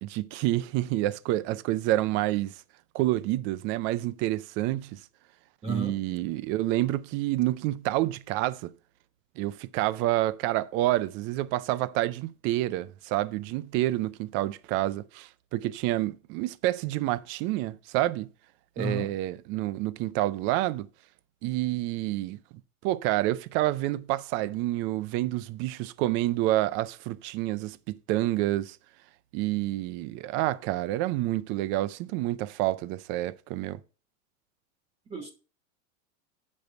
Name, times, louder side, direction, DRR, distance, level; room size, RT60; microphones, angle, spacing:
voice 1, 0.0-2.5 2.9-5.0 5.6-8.7 9.4-18.3 18.8-20.9 21.4-22.4 22.8-28.8 29.3-33.8, right 16 dB, 30° right, 0.4 m, -28 dB
voice 2, 5.6-6.0 18.8-19.1 35.1-35.3, right 2 dB, 15° right, 1.1 m, -32 dB
7.8 x 5.3 x 5.4 m
supercardioid pair, 130°, 42 cm